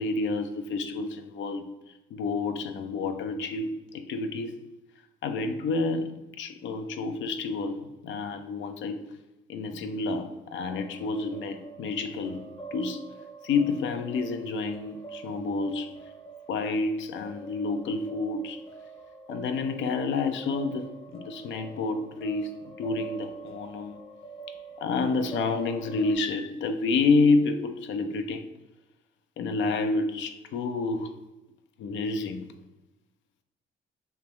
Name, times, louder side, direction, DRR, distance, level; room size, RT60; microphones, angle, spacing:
voice 1, 0.0-1.7 2.1-4.6 5.2-9.1 9.5-12.4 12.7-13.0 13.4-15.9 16.5-18.6 19.3-24.0 24.8-28.5 29.4-31.1 31.8-32.5, left 3 dB, 70° left, 8 dB, 0.5 m, -29 dB
sound 1, 10.6-26.2, right 4 dB, 30° left, 0.7 m, -45 dB
3.4 x 2.9 x 3.0 m, 1.0 s
cardioid pair, 90°, 20 cm